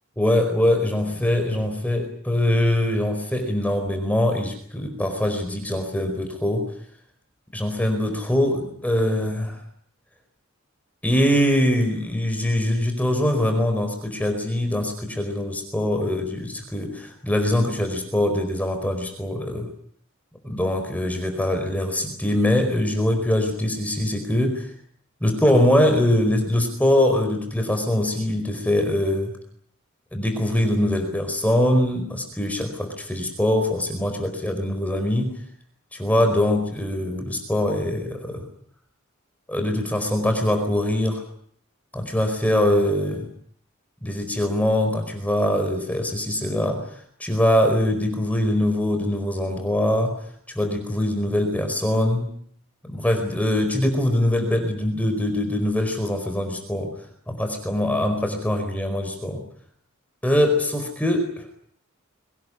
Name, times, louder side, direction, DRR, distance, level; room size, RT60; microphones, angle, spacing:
voice 1, 0.2-6.7 7.5-9.6 11.0-19.7 20.4-24.7 25.2-29.3 30.1-35.4 35.9-38.4 39.5-41.2 41.9-43.3 44.0-46.8 47.2-50.2 50.5-52.3 52.9-56.9 57.3-59.4 60.2-61.3, left 1 dB, 5° left, 5 dB, 4.7 m, -23 dB
23.5 x 19.5 x 9.8 m, 0.63 s
head